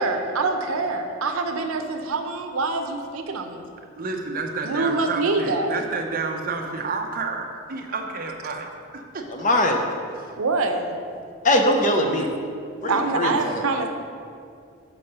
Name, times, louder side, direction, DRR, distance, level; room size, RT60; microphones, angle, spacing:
voice 1, 0.0-3.6 4.6-5.7 10.4-11.0 12.9-13.9, right 3 dB, 85° right, 5 dB, 0.7 m, -25 dB
voice 2, 4.0-9.3 10.2-10.3 12.8-12.9, right 4 dB, 40° right, 3 dB, 0.7 m, -30 dB
voice 3, 9.4-9.8 11.4-12.3 12.8-13.6, left 1 dB, 35° left, 3 dB, 0.7 m, -21 dB
7.0 x 4.7 x 5.4 m, 2.4 s
head